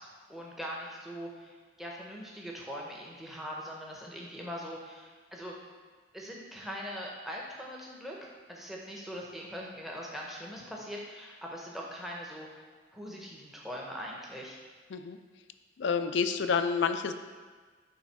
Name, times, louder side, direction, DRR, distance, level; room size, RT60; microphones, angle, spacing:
voice 1, 0.0-5.5 6.1-12.6 12.9-14.6, equal, ahead, -3 dB, 0.7 m, -42 dB
voice 2, 15.8-17.1, left 6 dB, 65° left, 9 dB, 0.4 m, -28 dB
7.1 x 3.2 x 4.6 m, 1.5 s
head